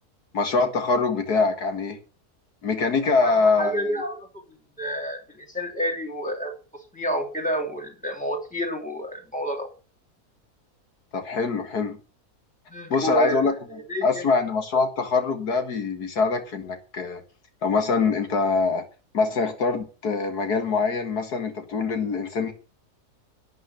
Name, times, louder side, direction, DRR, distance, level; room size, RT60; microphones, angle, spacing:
voice 1, 0.3-2.0 2.6-4.0 11.1-12.0 12.9-13.5 14.0-17.2 17.6-18.9 19.1-22.5, left 4 dB, 80° left, 2.2 m, -24 dB
voice 2, 3.2-4.4 4.8-9.7 12.7-13.5 13.9-14.3, equal, 5° left, 3.0 m, -29 dB
11.5 x 9.3 x 6.5 m
omnidirectional pair, 1.7 m